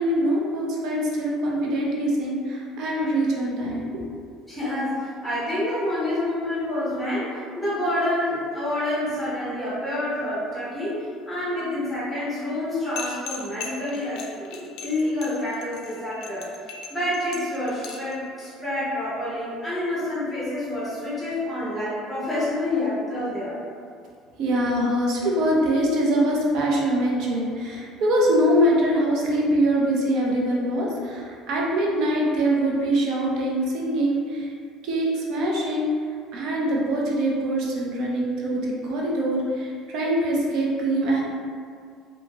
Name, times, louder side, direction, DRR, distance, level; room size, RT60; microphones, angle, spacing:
voice 1, 0.0-4.0 24.4-34.5 34.8-35.9 36.3-41.2, right 1 dB, 60° right, -3 dB, 0.5 m, -23 dB
voice 2, 4.5-16.5 16.9-23.6, left 1 dB, ahead, -11 dB, 1.2 m, -28 dB
sound 1, 13.0-18.1, left 6 dB, 70° left, 0.4 m, -37 dB
2.8 x 2.7 x 2.3 m, 2.2 s
cardioid pair, 140°, 0 cm